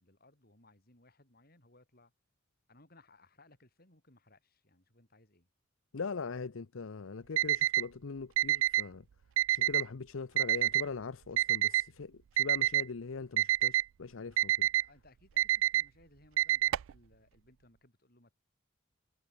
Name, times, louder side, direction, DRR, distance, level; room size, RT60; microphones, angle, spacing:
voice 1, 0.0-2.1 2.7-5.5 14.7-18.4, left 2 dB, 50° left, 7.3 m, -63 dB
voice 2, 5.9-9.0 9.5-14.7, left 4 dB, 90° left, 0.7 m, -41 dB
Alarm, 7.4-7.8 8.4-8.8 9.4-9.8 10.4-10.8 11.4-11.8 12.4-12.8 13.4-13.8 14.4-14.8 15.4-15.8 16.4-16.9, right 13 dB, 80° right, 0.3 m, -27 dB
head